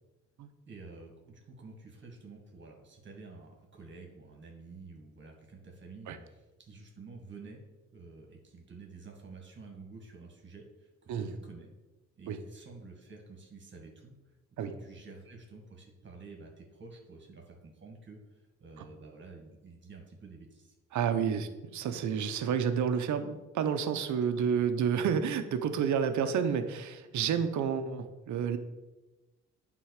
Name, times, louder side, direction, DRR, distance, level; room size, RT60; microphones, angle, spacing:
voice 1, 0.7-7.6 7.9-11.7 12.2-14.2 14.6-20.7 24.4-24.5 24.8-24.9, right 3 dB, 40° right, 1 dB, 2.0 m, -50 dB
voice 2, 20.9-28.6, right 7 dB, 75° right, 9 dB, 0.9 m, -30 dB
9.4 x 3.9 x 6.5 m, 1.1 s
cardioid pair, 90°, 30 cm